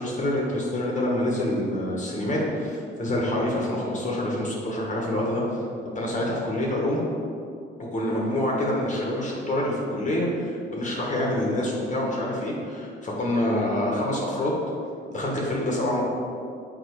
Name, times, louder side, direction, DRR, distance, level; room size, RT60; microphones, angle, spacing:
voice 1, 0.0-5.4 5.9-7.0 7.8-14.6 15.1-16.0, left 1 dB, 40° left, -3 dB, 1.6 m, -26 dB
6.8 x 4.3 x 4.8 m, 2.5 s
cardioid pair, 90°, 20 cm